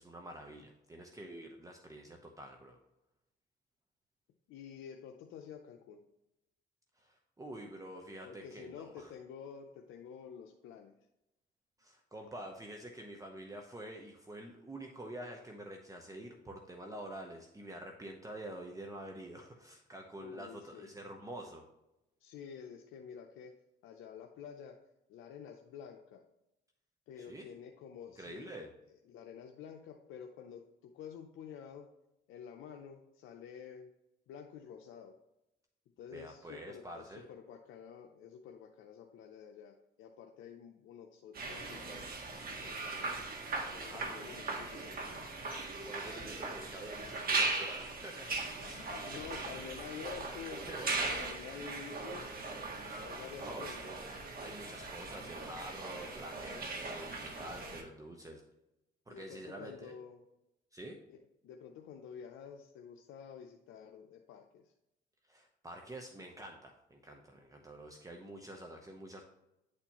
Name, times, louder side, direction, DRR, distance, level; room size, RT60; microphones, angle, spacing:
voice 1, 0.0-2.8 7.0-9.1 11.8-21.6 27.2-27.5 28.2-28.7 36.1-37.3 43.9-44.6 45.8-49.5 50.7-50.9 53.4-54.0 54.4-58.4 59.1-59.9 60.7-61.0 65.3-69.3, right 1 dB, 15° right, 2 dB, 0.8 m, -48 dB
voice 2, 4.5-6.0 8.2-11.0 20.2-20.9 22.2-23.5 23.8-24.8 25.1-26.2 27.1-28.6 29.1-31.9 32.3-33.9 34.3-35.2 36.0-42.1 42.5-43.1 43.7-44.9 48.6-50.6 51.2-52.3 53.0-53.9 59.1-60.2 61.1-61.2 61.4-64.6, left 8 dB, 85° left, 3 dB, 0.6 m, -49 dB
sound 1, 41.3-57.8, right 3 dB, 50° right, 1.5 m, -39 dB
9.7 x 4.4 x 2.9 m, 0.90 s
cardioid pair, 90°, 20 cm